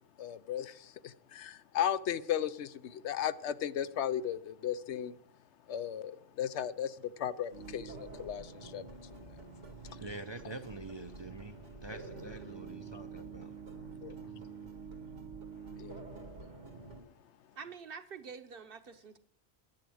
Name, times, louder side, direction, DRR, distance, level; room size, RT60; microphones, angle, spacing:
voice 1, 0.2-5.1 5.7-8.8 14.0-14.1 15.8-15.9, left 10 dB, 75° left, 0.9 m, -36 dB
sound 1, 7.5-17.0, right 4 dB, 85° right, 2.3 m, -47 dB
voice 2, 9.8-13.6 14.1-14.7, right 2 dB, 35° right, 0.5 m, -46 dB
voice 3, 17.5-19.2, right 6 dB, 55° right, 1.0 m, -46 dB
10.5 x 10.5 x 6.2 m
omnidirectional pair, 1.2 m